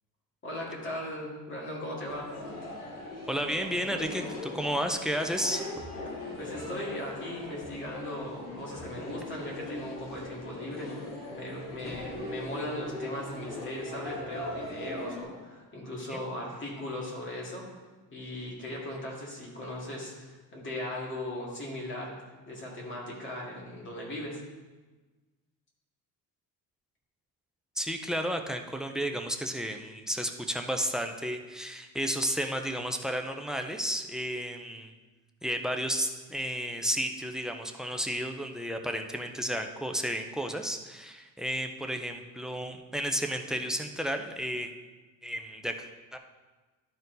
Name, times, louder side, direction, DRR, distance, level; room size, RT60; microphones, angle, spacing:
voice 1, 0.4-2.3 6.4-10.9 11.3-17.6 18.1-22.2 22.5-24.4, left 1 dB, 35° left, -3 dB, 2.2 m, -38 dB
sound 1, 2.1-15.2, left 1 dB, 65° left, 2.4 m, -40 dB
voice 2, 3.3-5.6 16.1-16.2 27.8-34.9 35.4-44.7 45.2-45.9 46.1-46.2, equal, ahead, 6 dB, 0.4 m, -32 dB
12.0 x 4.4 x 3.9 m, 1.3 s
cardioid pair, 145°, 35 cm